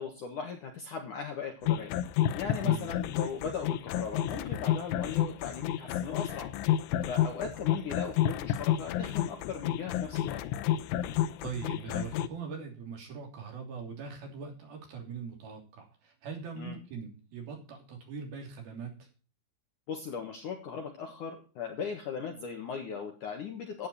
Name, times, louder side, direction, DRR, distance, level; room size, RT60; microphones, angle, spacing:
voice 1, 0.0-1.9 2.3-6.5 7.1-10.4 16.6-16.8 19.9-23.9, left 6 dB, 60° left, 3 dB, 2.3 m, -38 dB
sound 1, 1.7-12.3, left 11 dB, 85° left, 3.2 m, -30 dB
voice 2, 11.4-19.1, right 5 dB, 55° right, 2 dB, 4.6 m, -41 dB
13.0 x 8.9 x 4.3 m, 0.35 s
omnidirectional pair, 5.3 m